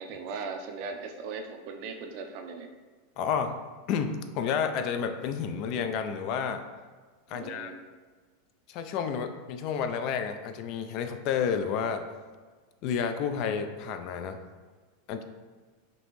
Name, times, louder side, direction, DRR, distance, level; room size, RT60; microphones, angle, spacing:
voice 1, 0.0-2.7 7.3-7.8, right 4 dB, 50° right, 5 dB, 0.5 m, -38 dB
voice 2, 3.2-3.6 3.9-6.6 7.3-7.7 8.7-12.0 12.8-14.4 15.1-15.2, left 7 dB, 45° left, 7 dB, 0.3 m, -30 dB
5.2 x 2.8 x 3.0 m, 1.4 s
supercardioid pair, 155°, 0 cm